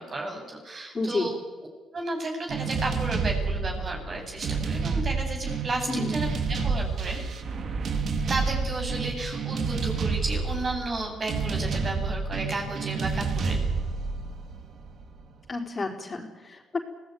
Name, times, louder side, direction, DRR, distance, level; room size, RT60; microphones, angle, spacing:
voice 1, 0.0-1.4 1.9-7.2 8.3-13.6, right 2 dB, 40° right, 2 dB, 8.0 m, -33 dB
voice 2, 0.9-1.3 5.9-6.2 15.5-16.8, left 3 dB, 30° left, 1 dB, 4.3 m, -30 dB
sound 1, 2.5-15.2, right 4 dB, 60° right, 2.8 m, -29 dB
24.0 x 18.0 x 9.5 m, 1.4 s
cardioid pair, 90°, 0 cm